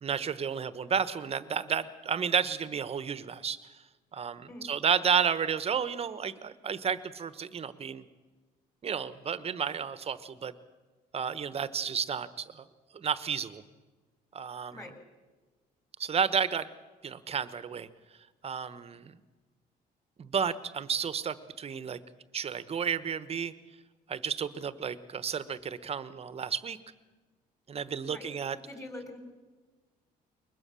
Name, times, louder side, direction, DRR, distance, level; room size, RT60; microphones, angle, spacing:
voice 1, 0.0-3.8 4.1-8.0 8.8-10.5 11.1-12.6 12.9-13.6 14.3-14.9 16.0-16.7 17.0-17.9 18.4-19.2 20.2-22.0 22.3-23.5 24.1-26.8 27.7-28.6, right 7 dB, 35° right, 14 dB, 1.1 m, -32 dB
voice 2, 28.7-29.2, left 2 dB, 20° left, 5 dB, 4.5 m, -44 dB
22.0 x 20.5 x 7.0 m, 1.3 s
cardioid pair, 110°, 17 cm